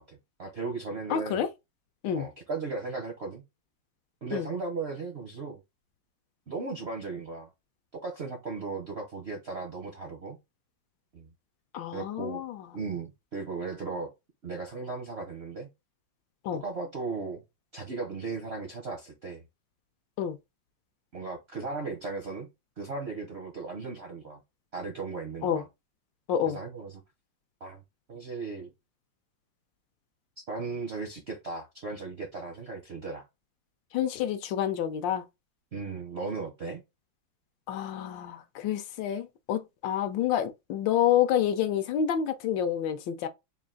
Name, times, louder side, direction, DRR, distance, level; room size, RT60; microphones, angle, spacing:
voice 1, 0.0-1.5 2.1-3.4 4.2-5.6 6.5-7.5 8.0-10.4 11.1-11.3 11.9-12.4 12.7-14.1 14.4-15.7 16.5-17.4 17.7-19.4 21.1-22.5 22.8-24.4 24.7-25.7 26.4-27.0 27.6-27.8 28.1-28.7 30.4-33.3 35.7-36.8, right 4 dB, 60° right, 0.6 m, -36 dB
voice 2, 1.1-1.5 2.0-2.3 4.3-4.5 11.7-12.6 16.4-16.6 20.2-20.4 25.4-25.6 26.3-26.6 33.9-35.2 37.7-43.3, left 9 dB, 75° left, 1.2 m, -28 dB
3.8 x 2.4 x 3.7 m
omnidirectional pair, 2.1 m